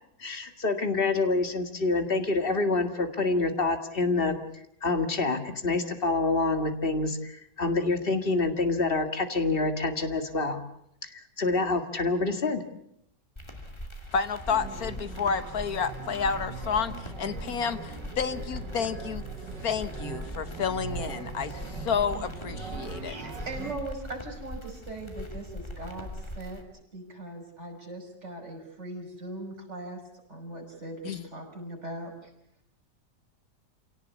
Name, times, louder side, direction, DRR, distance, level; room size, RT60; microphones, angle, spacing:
voice 1, 0.2-4.4 4.8-10.6 11.0-12.6, left 3 dB, 30° left, 2.1 m, -27 dB
sound 1, 13.4-26.6, equal, 15° left, 2.5 m, -41 dB
voice 2, 14.1-16.9 17.2-19.2 19.6-21.6 21.8-23.1 31.0-31.2, left 6 dB, 60° left, 1.5 m, -30 dB
sound 2, 14.5-23.7, right 5 dB, 80° right, 2.7 m, -40 dB
voice 3, 23.0-26.1 26.3-26.6 26.9-30.0 30.3-32.3, right 2 dB, 40° right, 6.2 m, -40 dB
27.0 x 18.0 x 8.4 m
omnidirectional pair, 1.9 m